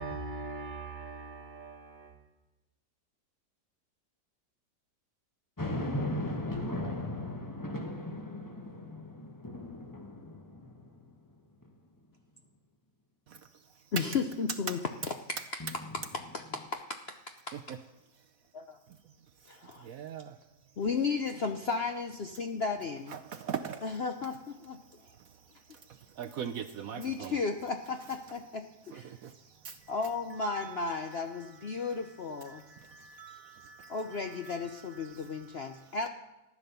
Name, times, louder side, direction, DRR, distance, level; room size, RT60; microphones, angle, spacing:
voice 1, 0.0-2.2, right 3 dB, 35° right, 1.0 m, -41 dB
sound 1, 5.6-11.1 11.6-11.7 15.6-16.7, left 1 dB, 15° left, 0.7 m, -37 dB
voice 2, 13.9-17.8 18.5-18.8 19.5-19.9 20.8-23.2 23.8-24.8 27.0-29.1 29.9-32.6 33.9-36.1, left 4 dB, 55° left, 0.7 m, -34 dB
voice 3, 19.8-20.3 23.1-23.8 25.9-27.4 28.9-29.3 29.6-29.8 30.4-31.2 31.7-31.9 32.5-34.7 35.0-35.8, right 8 dB, 65° right, 1.0 m, -42 dB
14.5 x 9.8 x 6.9 m
omnidirectional pair, 1.9 m